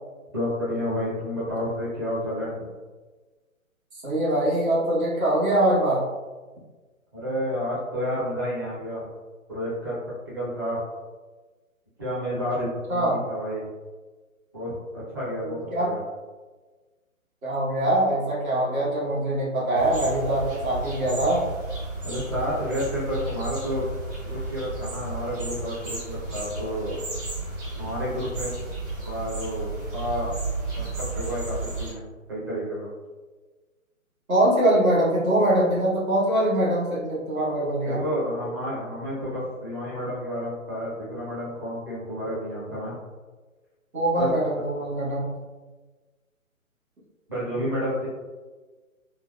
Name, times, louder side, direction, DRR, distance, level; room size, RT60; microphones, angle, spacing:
voice 1, 0.3-2.7 7.1-9.1 9.5-10.0 10.3-10.8 12.0-13.7 14.5-16.0 22.0-23.8 24.2-27.1 27.8-28.5 29.0-30.4 30.9-32.0 32.3-32.9 37.9-43.0 44.2-44.3 47.3-48.1, equal, 15° right, -9 dB, 0.5 m, -30 dB
voice 2, 4.0-6.0 12.9-13.2 15.4-15.9 17.4-21.4 34.3-38.0 43.9-45.3, right 1 dB, 75° right, -6 dB, 1.4 m, -23 dB
sound 1, 19.8-31.9, right 2 dB, 40° right, 1.3 m, -33 dB
3.2 x 2.0 x 2.3 m, 1.3 s
figure-of-eight pair, 145°, 42 cm